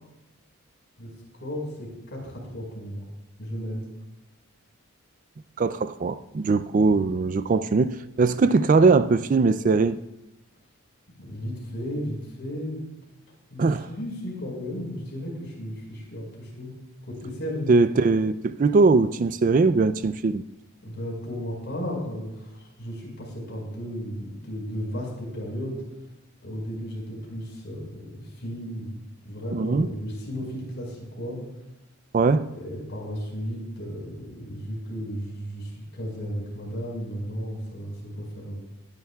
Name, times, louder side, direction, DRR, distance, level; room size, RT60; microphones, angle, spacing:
voice 1, 1.4-3.1 3.4-3.8 11.2-12.9 13.5-16.7 17.0-17.7 20.8-25.8 26.4-31.4 32.5-38.6, equal, 50° left, 5.0 m, -34 dB
voice 2, 5.6-10.0 13.6-13.9 17.7-20.4 29.5-29.9 32.1-32.5, right 4 dB, 35° right, 0.3 m, -21 dB
20.5 x 10.5 x 2.3 m
head